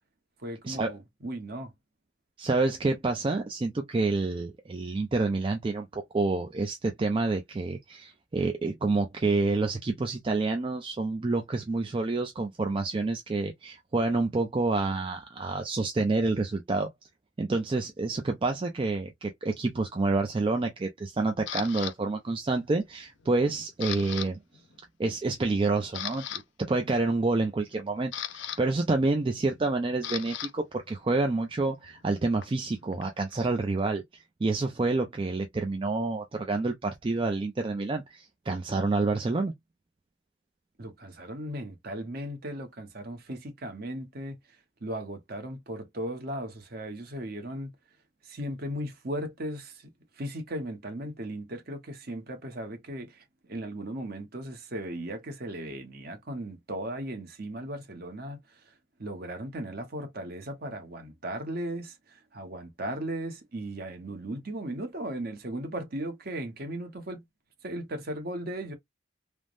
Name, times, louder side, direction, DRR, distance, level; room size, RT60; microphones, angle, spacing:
voice 1, 0.4-1.7 40.8-44.4 44.8-47.7 48.2-58.7 59.0-67.2 67.6-68.7, right 1 dB, 50° right, 0.8 m, -37 dB
voice 2, 2.4-16.9 17.4-24.4 25.0-26.3 26.6-39.5, right 3 dB, 25° right, 0.4 m, -28 dB
Camera, 21.5-21.9 22.5-22.9 23.2-24.3 24.5-24.7 25.3-25.4 25.8-26.4 27.6-30.5 30.8-33.4, left 11 dB, 60° left, 0.4 m, -38 dB
3.3 x 2.0 x 2.4 m
head